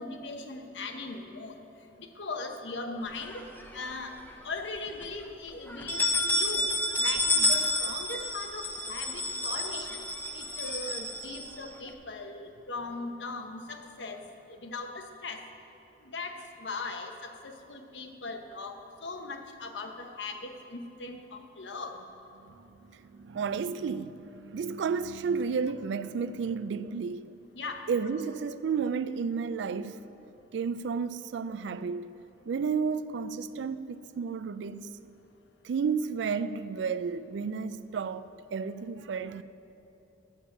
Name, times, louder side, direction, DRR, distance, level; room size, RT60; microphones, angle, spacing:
voice 1, 0.0-1.6 2.0-3.4 3.7-4.1 4.4-6.7 7.0-10.0 10.3-14.2 14.5-15.4 16.0-21.9 27.5-27.8, left 3 dB, 80° left, 0.9 m, -39 dB
sound 1, 3.2-4.1 4.5-4.6 5.0-5.1 5.7-11.9, left 1 dB, 10° left, 0.7 m, -30 dB
voice 2, 22.5-27.3 27.9-30.0 30.5-32.2 32.5-35.0 35.6-39.4, right 5 dB, 75° right, 0.3 m, -32 dB
8.7 x 7.4 x 6.4 m
head